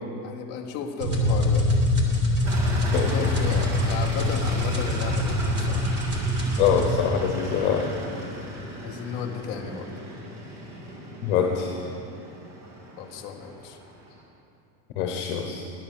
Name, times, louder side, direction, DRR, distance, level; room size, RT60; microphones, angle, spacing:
voice 1, 0.2-1.7 3.1-5.9 8.8-9.9 13.0-13.8, left 6 dB, 25° left, 1 dB, 0.4 m, -34 dB
sound 1, 1.0-7.0, left 1 dB, 25° right, 1.0 m, -24 dB
sound 2, 2.4-14.2, equal, 45° right, 1.9 m, -35 dB
voice 2, 2.9-3.3 6.6-8.0 11.2-11.8 15.0-15.6, left 8 dB, 50° left, 3 dB, 0.9 m, -24 dB
10.5 x 6.6 x 7.2 m, 2.7 s
supercardioid pair, 170°, 45 cm